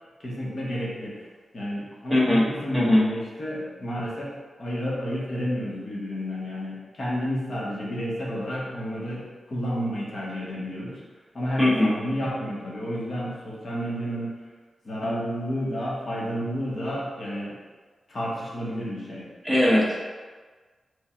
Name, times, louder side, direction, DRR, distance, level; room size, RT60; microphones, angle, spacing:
voice 1, 0.2-1.3 1.5-4.3 4.6-11.0 11.3-14.3 14.8-17.5 18.1-19.3 19.8-19.9, equal, 50° left, -5 dB, 1.1 m, -31 dB
voice 2, 2.1-2.4 2.7-3.0 11.6-11.9 19.4-20.1, left 1 dB, 5° left, -5 dB, 0.8 m, -20 dB
3.4 x 2.3 x 4.4 m, 1.4 s
cardioid pair, 80°, 0 cm